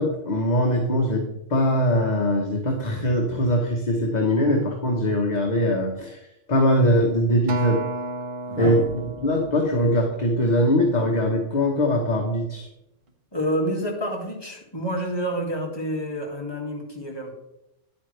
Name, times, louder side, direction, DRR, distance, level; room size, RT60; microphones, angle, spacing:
voice 1, 0.0-6.2 6.5-7.8 8.6-12.7, equal, 35° left, 0 dB, 1.2 m, -22 dB
sound 1, 7.0-7.1 8.4-11.5 13.1-13.4, right 3 dB, 50° right, 1.5 m, -38 dB
Acoustic guitar, 7.5-11.9 12.5-12.7, right 3 dB, 70° right, 1.1 m, -35 dB
voice 2, 13.3-17.4, equal, 20° left, -2 dB, 2.1 m, -28 dB
10.5 x 8.6 x 3.3 m, 0.85 s
omnidirectional pair, 1.3 m